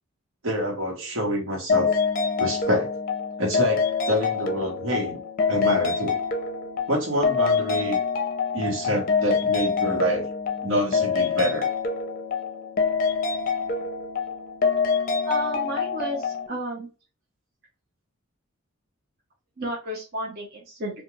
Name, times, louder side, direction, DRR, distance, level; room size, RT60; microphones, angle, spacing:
voice 1, 0.4-1.9 2.4-2.9 3.4-5.2 5.5-6.2 6.9-8.0 8.5-10.3 10.6-11.7, equal, 80° right, 1.1 m, -26 dB
sound 1, 1.7-16.5, left 5 dB, 45° left, 0.5 m, -25 dB
voice 2, 15.2-16.9 19.6-21.0, right 1 dB, 50° right, 0.7 m, -32 dB
2.3 x 2.3 x 3.0 m
head